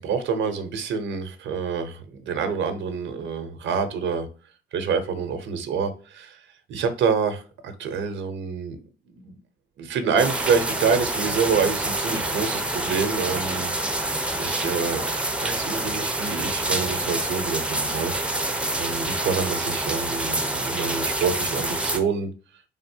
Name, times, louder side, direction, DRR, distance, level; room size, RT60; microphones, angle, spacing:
voice 1, 0.0-4.3 4.7-6.4 6.7-8.8 9.1-9.3 9.8-18.1 18.8-22.3, right 5 dB, 70° right, 0.8 m, -27 dB
sound 1, 10.2-22.0, right 1 dB, 5° right, 0.7 m, -27 dB
3.9 x 3.6 x 2.7 m
cardioid pair, 90°, 20 cm